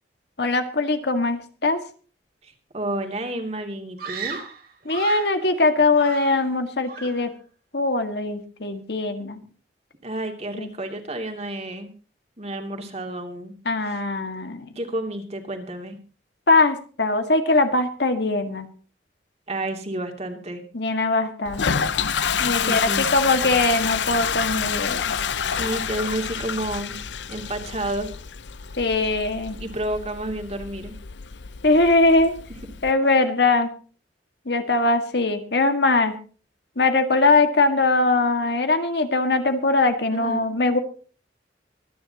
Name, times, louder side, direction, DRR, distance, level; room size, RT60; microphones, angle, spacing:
voice 1, 0.4-1.8 4.9-7.3 7.7-9.4 10.6-10.7 13.7-14.7 16.5-18.7 20.7-21.9 22.4-25.1 28.8-29.6 31.6-32.3 32.8-33.7 34.5-36.1 36.8-40.8, left 2 dB, 70° left, 7 dB, 1.9 m, -21 dB
voice 2, 2.4-4.4 10.0-11.9 12.4-13.5 14.7-16.0 19.5-20.6 22.6-23.1 25.5-27.0 27.3-28.1 29.5-30.9 40.1-40.5, right 1 dB, 40° right, 4 dB, 2.7 m, -30 dB
Screaming, 4.0-5.4 5.9-6.6 6.9-7.3, right 6 dB, 60° right, 2.8 m, -36 dB
Toilet flush, 21.4-32.9, left 7 dB, 85° left, 0.7 m, -28 dB
25.0 x 10.0 x 3.0 m, 0.39 s
head